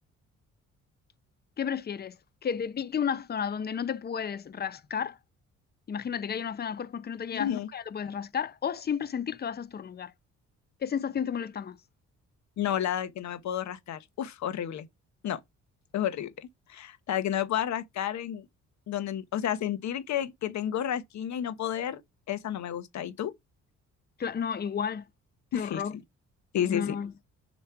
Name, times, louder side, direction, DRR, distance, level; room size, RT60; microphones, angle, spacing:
voice 1, 1.6-2.2 2.4-5.2 5.9-10.1 10.8-11.8 24.2-25.1 25.5-25.9 26.7-27.1, left 7 dB, 35° left, 0.7 m, -32 dB
voice 2, 7.3-7.7 12.6-14.9 15.2-15.4 15.9-18.4 18.9-22.0 22.3-23.3 25.5-25.8 26.5-27.0, left 10 dB, 65° left, 1.2 m, -31 dB
7.0 x 3.1 x 4.7 m
cardioid pair, 90°, 30 cm